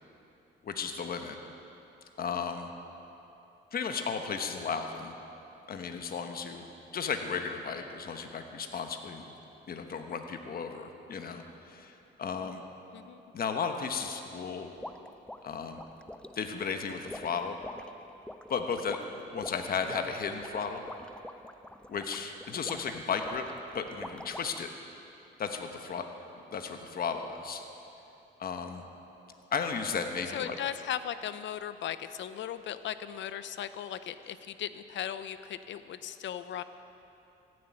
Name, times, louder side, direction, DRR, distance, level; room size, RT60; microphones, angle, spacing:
voice 1, 0.6-1.4 2.2-2.7 3.7-5.1 5.7-6.6 6.9-9.3 9.7-12.6 13.3-14.7 15.4-15.8 16.3-17.6 18.5-19.0 19.3-20.8 21.9-23.4 23.7-24.7 25.4-26.0 26.5-27.6 28.4-28.8 29.5-30.6, left 6 dB, 50° left, 5 dB, 1.2 m, -34 dB
voice 2, 12.9-13.2 30.3-36.6, left 10 dB, 70° left, 12 dB, 0.7 m, -37 dB
sound 1, 14.8-24.7, left 1 dB, 5° left, 0.5 m, -46 dB
15.0 x 7.8 x 9.0 m, 2.9 s
cardioid pair, 90°, 20 cm